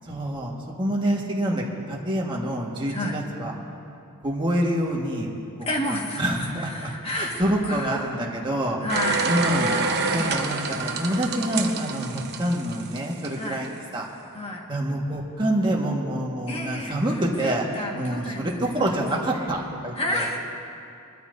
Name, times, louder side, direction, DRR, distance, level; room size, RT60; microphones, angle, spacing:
voice 1, 0.0-3.5 4.2-5.3 5.6-8.8 9.3-9.7 10.1-14.1 14.7-17.7 17.9-20.2, right 1 dB, 20° right, -2 dB, 1.6 m, -27 dB
voice 2, 5.6-8.2 8.8-9.3 10.1-10.4 11.1-11.2 13.4-13.6 14.3-14.7 16.5-19.5 19.9-20.4, left 1 dB, 25° left, -1 dB, 1.6 m, -31 dB
sound 1, 8.9-13.3 13.6-13.7, right 4 dB, 50° right, 0.9 m, -27 dB
22.0 x 13.0 x 2.6 m, 2.6 s
head